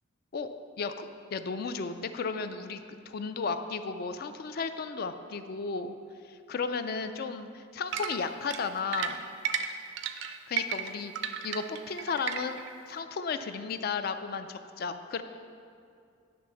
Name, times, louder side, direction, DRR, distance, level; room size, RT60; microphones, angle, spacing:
voice 1, 0.8-6.0 6.2-9.2 10.5-15.2, left 5 dB, 50° left, 9 dB, 0.3 m, -34 dB
sound 1, 7.9-12.7, right 8 dB, 65° right, 0.4 m, -34 dB
10.0 x 3.4 x 5.6 m, 2.3 s
head